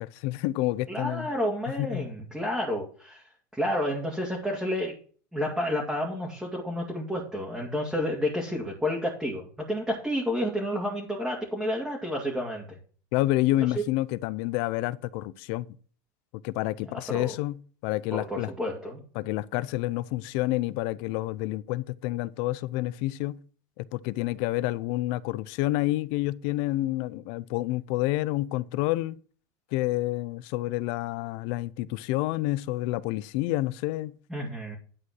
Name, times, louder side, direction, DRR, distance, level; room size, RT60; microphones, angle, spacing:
voice 1, 0.0-1.3 1.8-2.0 13.1-15.7 16.4-18.5 19.2-23.4 23.8-29.2 29.7-34.1, left 17 dB, 60° left, 0.6 m, -29 dB
voice 2, 0.9-5.0 5.3-12.8 13.6-13.8 17.1-17.3 18.1-19.0 34.3-34.8, equal, ahead, 2.3 m, -30 dB
11.0 x 4.9 x 6.2 m
supercardioid pair, 130°, 10 cm